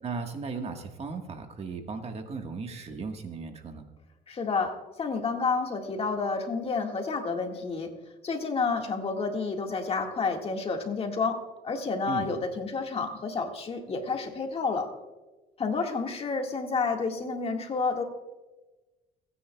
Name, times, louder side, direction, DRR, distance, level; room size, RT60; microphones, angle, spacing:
voice 1, 0.0-3.8 12.1-12.3, right 4 dB, 40° right, 5 dB, 1.4 m, -36 dB
voice 2, 4.3-7.9 8.2-14.9 15.6-18.0, left 4 dB, 35° left, 3 dB, 1.8 m, -30 dB
30.0 x 10.0 x 2.3 m, 1.2 s
cardioid pair, 110°, 17 cm